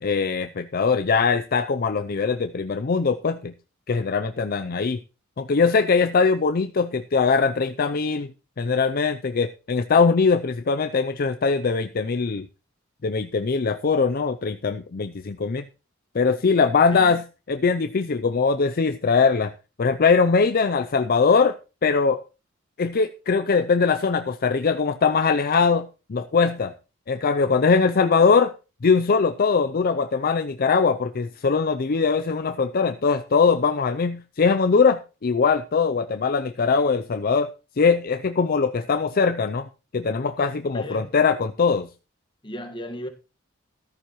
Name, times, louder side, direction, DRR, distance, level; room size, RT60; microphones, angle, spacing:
voice 1, 0.0-3.5 3.9-5.0 5.4-8.3 8.6-12.5 13.0-15.6 16.1-17.2 17.5-19.5 19.8-22.2 22.8-26.7 27.1-28.5 28.8-37.5 37.8-39.7 39.9-41.9, left 5 dB, 45° left, 0.5 m, -21 dB
voice 2, 16.9-17.2 40.7-41.2 42.4-43.1, left 1 dB, 25° left, 1.6 m, -35 dB
14.0 x 13.0 x 3.1 m
head